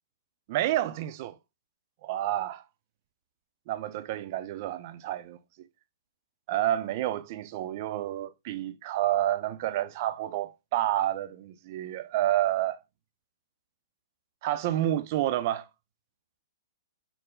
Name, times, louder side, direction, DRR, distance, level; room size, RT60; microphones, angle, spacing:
voice 1, 0.5-1.3 2.0-2.6 3.7-5.4 6.5-12.8 14.4-15.6, right 13 dB, 45° right, 0.4 m, -29 dB
4.6 x 2.0 x 3.7 m
hypercardioid pair, 140°, 2 cm